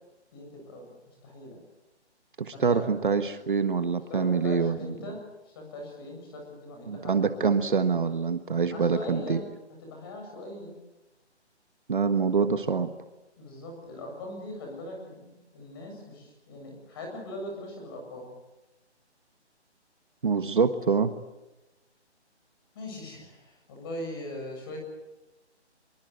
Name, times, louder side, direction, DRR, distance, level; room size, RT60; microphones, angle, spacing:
voice 1, 0.3-0.8 1.2-1.6 2.5-2.9 4.1-5.2 5.4-7.2 8.7-9.4 9.8-10.7 13.4-18.3 22.7-24.8, left 1 dB, 20° left, 1 dB, 7.5 m, -40 dB
voice 2, 2.4-5.0 6.9-9.4 11.9-12.9 20.2-21.1, right 5 dB, 45° right, 9 dB, 1.5 m, -25 dB
24.5 x 23.5 x 8.1 m, 1.0 s
hypercardioid pair, 170°, 35 cm